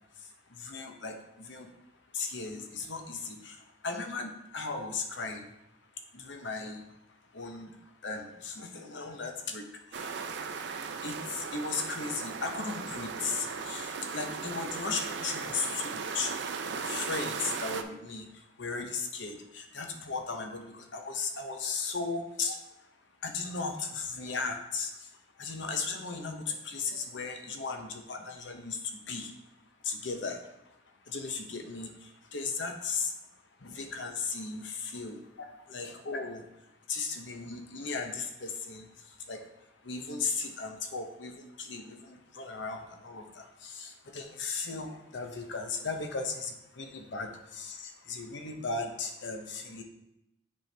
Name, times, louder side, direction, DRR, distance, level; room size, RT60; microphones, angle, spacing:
voice 1, 0.6-1.7 2.1-3.6 3.8-5.4 6.1-6.8 7.3-7.7 8.0-9.6 11.0-16.3 16.7-18.3 18.6-22.6 23.2-24.9 25.4-28.8 29.1-29.3 29.8-30.4 31.1-31.9 32.3-33.1 33.6-35.2 35.7-36.4 36.9-38.8 39.3-39.4 39.8-41.3 41.6-49.8, left 4 dB, 70° left, 5 dB, 0.8 m, -36 dB
sound 1, 9.9-17.8, right 5 dB, 65° right, 0.4 m, -37 dB
7.5 x 4.4 x 3.3 m, 0.87 s
head